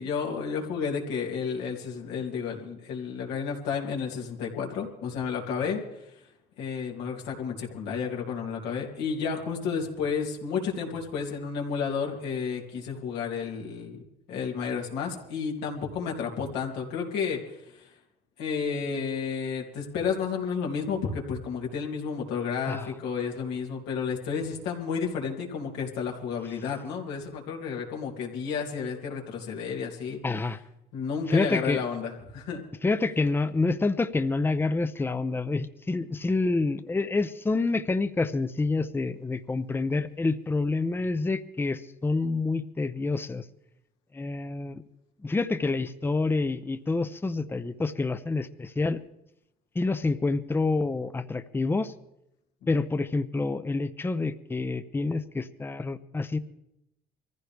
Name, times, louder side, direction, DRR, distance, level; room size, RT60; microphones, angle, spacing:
voice 1, 0.0-6.1 6.6-14.0 14.3-17.9 18.4-30.2 30.9-32.6, left 6 dB, 90° left, 0 dB, 2.9 m, -31 dB
voice 2, 30.2-30.6 31.3-31.8 32.8-43.5 44.1-44.8 45.2-49.0 49.7-51.9 52.7-56.4, left 3 dB, 15° left, 11 dB, 0.6 m, -27 dB
24.0 x 15.0 x 3.4 m, 0.84 s
cardioid pair, 110°, 17 cm